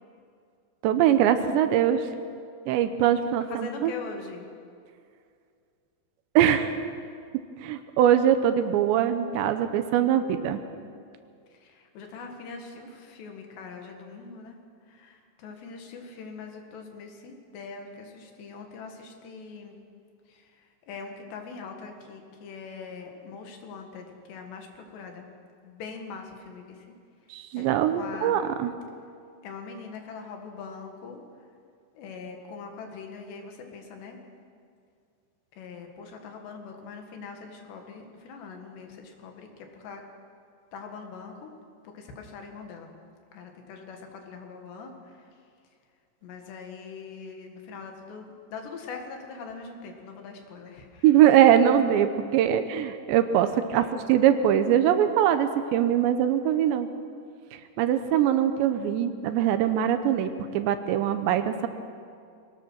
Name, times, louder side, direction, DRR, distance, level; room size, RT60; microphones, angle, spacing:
voice 1, 0.8-2.1 2.7-3.9 6.4-6.8 7.6-10.6 27.3-28.7 51.0-56.9 57.8-61.7, right 10 dB, 80° right, 9 dB, 3.0 m, -22 dB
voice 2, 3.5-4.5 11.5-14.6 14.9-19.8 20.3-25.3 25.6-27.0 27.6-28.4 29.4-31.2 32.0-34.2 35.5-40.0 40.7-41.5 41.8-42.9 43.3-45.3 46.2-51.1 53.7-54.0, left 5 dB, 70° left, 3 dB, 3.8 m, -42 dB
23.0 x 18.0 x 6.3 m, 2.3 s
omnidirectional pair, 5.3 m